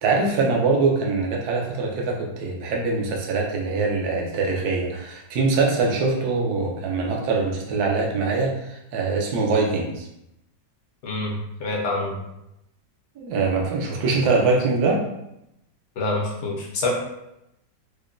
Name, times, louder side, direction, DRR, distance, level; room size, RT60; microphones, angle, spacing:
voice 1, 0.0-10.1 13.2-15.0, right 3 dB, 70° right, 0 dB, 1.1 m, -23 dB
voice 2, 11.0-12.2 16.0-16.9, left 2 dB, 60° left, -1 dB, 0.7 m, -26 dB
4.9 x 2.2 x 2.4 m, 0.85 s
omnidirectional pair, 1.9 m